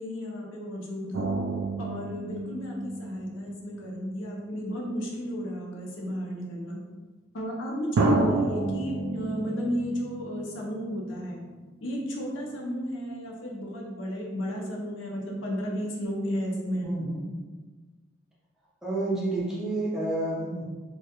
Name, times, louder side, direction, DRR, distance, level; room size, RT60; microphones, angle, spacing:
voice 1, 0.0-1.3 1.8-6.8 7.3-11.4 11.8-16.9, equal, 75° left, -1 dB, 0.5 m, -33 dB
sound 1, 1.1-5.1 6.0-6.1 8.0-11.3 11.6-11.7, right 2 dB, 90° right, 0.3 m, -30 dB
voice 2, 16.8-17.2 18.8-20.6, right 2 dB, 5° right, -7 dB, 0.5 m, -29 dB
2.2 x 2.1 x 2.8 m, 1.3 s
head